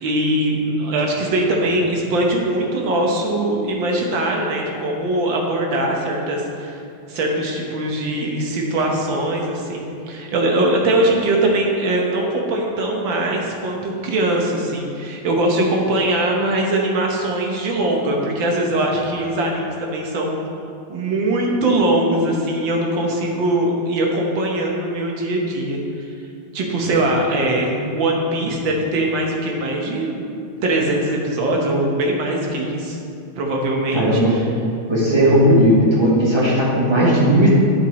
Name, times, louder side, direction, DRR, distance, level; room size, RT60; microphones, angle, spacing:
voice 1, 0.0-6.8 7.1-20.3 20.9-26.1 26.5-30.3 30.6-33.0 33.4-34.5, right 1 dB, 65° right, 0 dB, 1.7 m, -21 dB
voice 2, 33.9-34.3 34.9-37.5, equal, 15° right, -7 dB, 1.2 m, -15 dB
9.7 x 4.8 x 4.1 m, 2.5 s
omnidirectional pair, 2.3 m